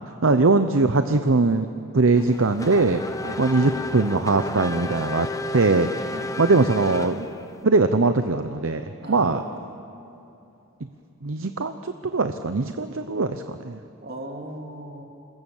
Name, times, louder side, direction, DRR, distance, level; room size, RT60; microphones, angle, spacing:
voice 1, 0.2-1.7 1.9-3.0 3.4-5.3 5.5-5.9 6.4-7.3 7.6-9.4 11.2-13.8, right 3 dB, 60° right, 9 dB, 0.7 m, -21 dB
Race car auto racing / Accelerating revving vroom, 2.2-7.6, left 2 dB, 15° left, 0.7 m, -33 dB
voice 2, 9.0-9.7 14.0-15.0, right 1 dB, 45° right, 2 dB, 2.6 m, -37 dB
27.5 x 21.0 x 7.3 m, 2.9 s
head